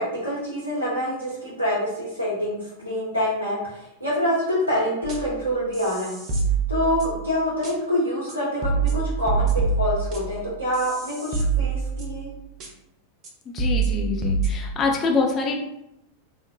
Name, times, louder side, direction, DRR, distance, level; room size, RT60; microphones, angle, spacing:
voice 1, 0.0-6.2 6.7-12.3, equal, 90° right, -8 dB, 0.7 m, -26 dB
sound 1, 5.0-5.4 5.7-7.3 7.6-7.7 8.3-8.4 8.6-12.3 12.6-12.7 13.2-13.3 13.6-14.5, right 5 dB, 35° right, 0.5 m, -25 dB
voice 2, 13.5-15.6, left 4 dB, 30° left, 1 dB, 0.5 m, -25 dB
3.2 x 2.1 x 2.2 m, 0.83 s
figure-of-eight pair, 90°, 0 cm